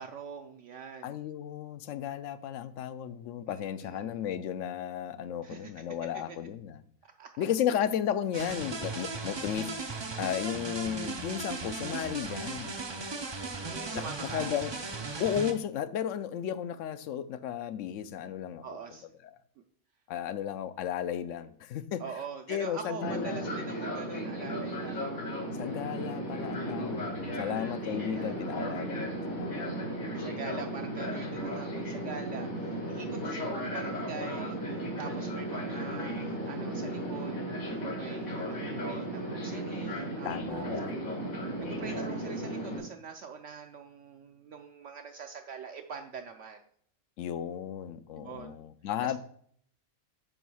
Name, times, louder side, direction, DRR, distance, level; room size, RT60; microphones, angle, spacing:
voice 1, 0.0-1.2 3.5-4.2 5.4-5.8 6.1-6.4 7.0-7.4 13.6-14.5 18.6-19.1 22.0-25.1 27.2-27.7 28.0-28.6 29.5-29.9 30.2-37.5 37.9-40.8 41.6-46.6 48.2-48.6 49.0-49.1, right 6 dB, 65° right, 5 dB, 0.9 m, -44 dB
voice 2, 1.0-6.8 7.4-9.7 10.2-12.7 13.9-14.7 15.2-18.6 20.1-22.0 22.5-23.5 25.5-29.8 40.2-40.9 41.6-42.0 47.2-49.2, left 9 dB, 70° left, 13 dB, 0.9 m, -34 dB
sound 1, 8.3-15.5, right 3 dB, 35° right, 0.4 m, -37 dB
Fixed-wing aircraft airplane, 23.0-42.8, right 1 dB, 85° left, 2.7 m, -35 dB
9.0 x 3.1 x 6.2 m, 0.62 s
omnidirectional pair, 1.4 m